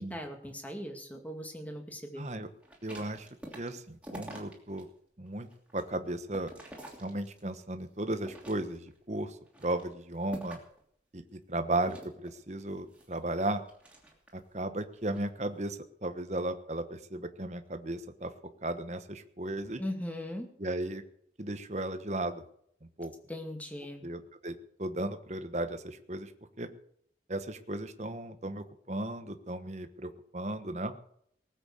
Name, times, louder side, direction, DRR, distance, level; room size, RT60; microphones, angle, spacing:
voice 1, 0.0-2.3 19.8-20.5 23.3-24.0, left 1 dB, 10° left, 3 dB, 2.2 m, -39 dB
voice 2, 2.2-2.5 2.8-3.3 3.5-4.9 5.2-6.5 7.0-10.6 11.1-13.6 14.3-18.3 18.6-19.8 20.6-21.0 21.4-22.4 23.0-23.1 24.0-26.3 26.6-26.7 27.3-31.0, right 1 dB, 40° right, 9 dB, 1.2 m, -35 dB
sound 1, 2.6-4.8 5.3-7.6 8.1-9.0 9.5-10.8 11.8-14.5 15.0-15.3, right 1 dB, 5° right, 3.0 m, -48 dB
19.0 x 8.1 x 6.7 m, 0.68 s
head